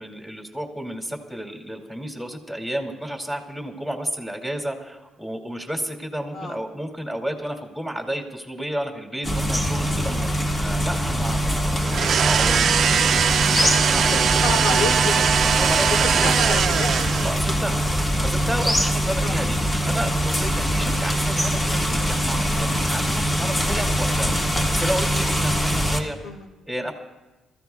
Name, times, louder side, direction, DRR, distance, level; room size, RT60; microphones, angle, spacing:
voice 1, 0.0-10.3 10.6-12.7 13.4-14.3 14.6-14.8 15.6-16.5 17.2-17.8 18.2-19.6 19.9-24.4 24.7-26.2 26.7-26.9, right 1 dB, 5° left, 1 dB, 2.4 m, -31 dB
sound 1, 9.2-26.0, equal, 25° left, 1.6 m, -23 dB
sound 2, 11.9-17.5, right 8 dB, 60° right, 0.5 m, -21 dB
voice 2, 14.1-15.3 15.9-17.1 17.7-17.8 19.2-19.4 25.6-25.7 26.2-26.5, left 3 dB, 75° left, 3 dB, 2.0 m, -29 dB
26.5 x 15.0 x 2.3 m, 1.1 s
cardioid pair, 90°, 0 cm